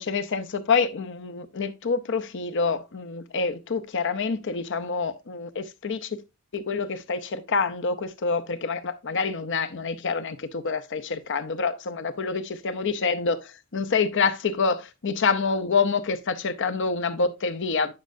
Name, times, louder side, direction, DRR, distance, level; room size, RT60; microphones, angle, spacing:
voice 1, 0.0-6.2 6.5-17.9, left 4 dB, 60° left, 0.7 m, -27 dB
9.6 x 6.2 x 2.6 m
head